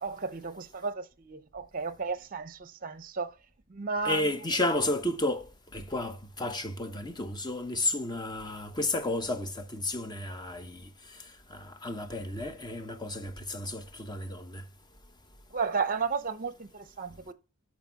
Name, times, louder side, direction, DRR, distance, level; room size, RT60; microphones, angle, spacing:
voice 1, 0.0-3.3 3.7-4.3 15.5-17.3, right 5 dB, 40° right, 0.7 m, -33 dB
voice 2, 4.0-11.2 11.5-14.6, left 1 dB, 20° left, 1.0 m, -32 dB
12.5 x 4.3 x 5.7 m
head